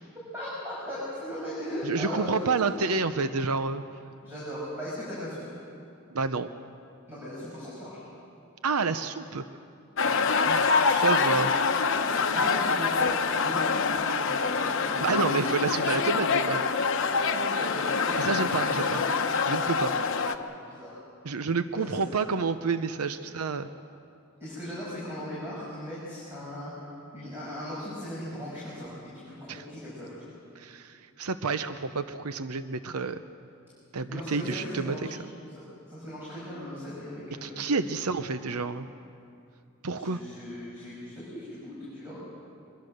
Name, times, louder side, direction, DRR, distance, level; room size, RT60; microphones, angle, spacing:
voice 1, 0.1-2.9 4.2-5.5 7.1-8.1 10.0-10.2 12.2-15.2 17.1-19.1 19.9-20.1 20.7-20.9 21.7-22.2 24.4-26.7 27.1-28.9 29.2-30.1 34.1-35.1 35.9-37.6 39.9-42.2, equal, 10° right, -8 dB, 6.4 m, -38 dB
voice 2, 1.9-3.8 6.1-6.5 8.6-9.4 10.5-11.5 15.0-16.6 18.2-19.0 19.5-19.9 21.2-23.7 29.5-29.6 30.5-33.2 33.9-35.2 37.4-38.9 39.8-40.2, right 4 dB, 85° right, 11 dB, 0.7 m, -29 dB
sound 1, 10.0-20.4, left 5 dB, 60° left, 1.0 m, -25 dB
24.5 x 22.0 x 6.6 m, 2.5 s
head